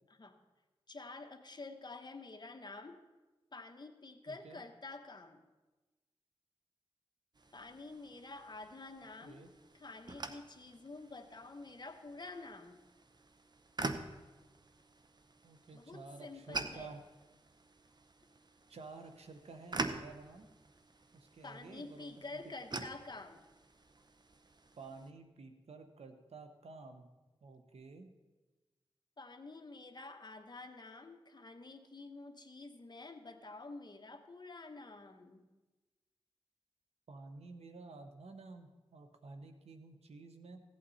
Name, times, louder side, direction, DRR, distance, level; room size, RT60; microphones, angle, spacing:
voice 1, 0.9-3.0 3.5-5.4 7.5-9.5 9.7-12.8 15.7-17.0 21.4-23.4 29.2-35.5, left 3 dB, 45° left, 5 dB, 1.2 m, -49 dB
voice 2, 4.3-4.6 9.2-9.5 15.4-17.1 18.7-20.5 21.1-22.5 24.8-27.1 27.4-28.1 37.1-40.6, right 3 dB, 90° right, 7 dB, 1.0 m, -52 dB
sound 1, 7.3-25.1, right 3 dB, 45° right, 0.9 m, -47 dB
15.5 x 8.5 x 4.1 m, 1.2 s
cardioid pair, 55°, 10 cm